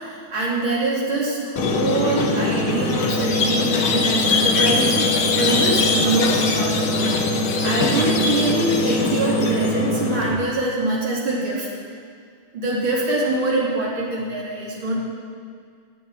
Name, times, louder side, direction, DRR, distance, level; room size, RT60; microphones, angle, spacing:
voice 1, 0.0-7.2 7.6-11.7 12.5-14.9, right 2 dB, 65° right, -6 dB, 4.7 m, -24 dB
Squeak, 1.6-10.3, left 2 dB, 80° left, 2.4 m, -21 dB
16.0 x 9.5 x 9.3 m, 2.1 s
omnidirectional pair, 2.4 m